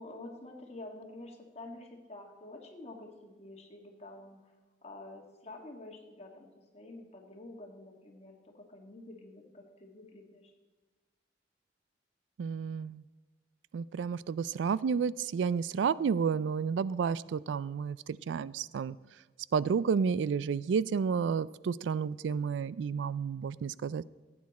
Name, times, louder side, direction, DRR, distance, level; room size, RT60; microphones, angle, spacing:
voice 1, 0.0-4.5 4.8-10.5, left 2 dB, 35° left, 2 dB, 1.8 m, -48 dB
voice 2, 12.4-13.0 13.7-19.0 19.5-24.0, right 6 dB, 85° right, 20 dB, 0.3 m, -31 dB
15.0 x 8.7 x 4.1 m, 1.3 s
head